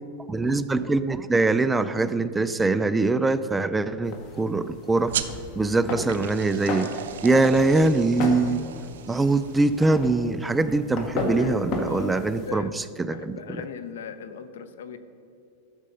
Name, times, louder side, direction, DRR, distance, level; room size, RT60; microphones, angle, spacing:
voice 1, 0.3-5.1 5.6-6.9 7.2-8.6 9.1-13.6, right 3 dB, 10° right, 13 dB, 0.3 m, -23 dB
sound 1, 4.0-12.5, left 3 dB, 40° left, 1.4 m, -34 dB
sound 2, 5.1-10.2, right 10 dB, 80° right, 0.6 m, -37 dB
voice 2, 11.4-15.0, left 6 dB, 85° left, 12 dB, 0.8 m, -39 dB
12.5 x 6.5 x 5.2 m, 2.6 s
supercardioid pair, 140°, 0 cm